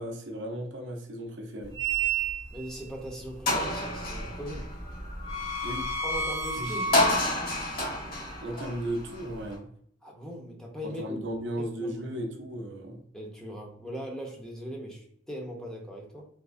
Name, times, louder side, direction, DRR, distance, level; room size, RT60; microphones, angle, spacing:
voice 1, 0.0-1.8 5.6-5.9 6.6-7.0 8.4-9.7 10.8-13.1, right 1 dB, 60° right, 2 dB, 0.7 m, -35 dB
sound 1, 1.7-2.7 3.1-3.2 3.5-9.6, equal, 50° left, 1.4 m, -29 dB
voice 2, 2.5-4.7 6.0-7.2 10.0-11.2 11.6-12.1 13.1-16.3, equal, 5° left, -1 dB, 0.7 m, -39 dB
3.5 x 2.9 x 2.5 m, 0.65 s
head